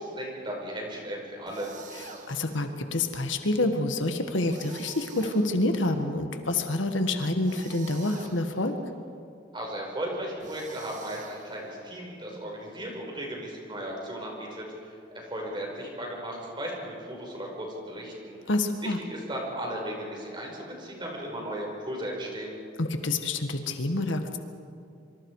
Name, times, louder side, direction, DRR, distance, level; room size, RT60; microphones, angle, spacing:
voice 1, 0.0-1.7 9.5-22.6, right 1 dB, 25° right, -1 dB, 5.3 m, -36 dB
sound 1, 1.5-2.6 4.4-5.9 7.4-8.7 10.4-11.8, right 4 dB, 40° right, 1.9 m, -47 dB
voice 2, 2.0-8.8 18.5-19.0 22.8-24.4, left 2 dB, 80° left, 6 dB, 1.7 m, -27 dB
26.5 x 24.5 x 4.9 m, 2.5 s
head